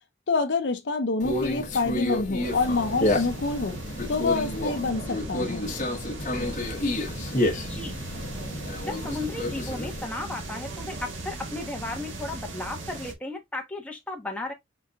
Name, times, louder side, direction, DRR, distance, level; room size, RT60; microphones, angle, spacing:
voice 1, 0.3-3.8 4.1-5.7, left 3 dB, 60° left, 0.6 m, -27 dB
Conversation, 1.2-10.0, left 1 dB, 40° left, 1.2 m, -30 dB
sound 1, 2.4-13.1, right 2 dB, 75° right, 1.3 m, -38 dB
voice 2, 7.5-8.0 8.8-14.5, left 2 dB, 5° left, 1.0 m, -35 dB
5.9 x 3.8 x 2.3 m
head